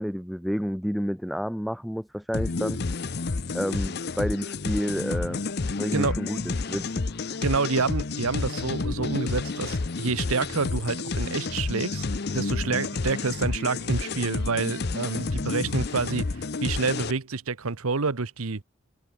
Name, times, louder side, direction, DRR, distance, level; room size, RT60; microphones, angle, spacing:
voice 1, 0.0-2.8 3.5-5.4 5.8-7.4, equal, ahead, 0.5 m, -30 dB
sound 1, 2.3-17.1, left 3 dB, 45° left, 0.7 m, -30 dB
voice 2, 7.4-12.1 12.3-18.6, right 4 dB, 75° right, 1.0 m, -28 dB
head